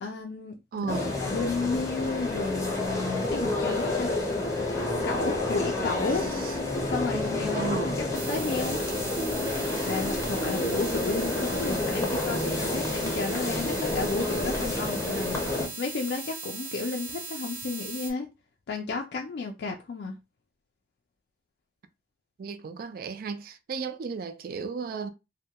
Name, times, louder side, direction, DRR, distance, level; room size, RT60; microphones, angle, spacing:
voice 1, 0.0-4.1 5.0-6.3 6.9-9.0 9.9-15.4 15.8-18.3 18.7-20.1, left 4 dB, 65° left, 0.4 m, -32 dB
voice 2, 0.7-1.2 7.5-8.0 22.4-25.1, right 5 dB, 55° right, 0.3 m, -34 dB
sound 1, 0.9-15.7, left 2 dB, 20° left, 0.6 m, -29 dB
sound 2, 8.1-18.1, right 4 dB, 75° right, 0.8 m, -39 dB
2.2 x 2.1 x 2.7 m
head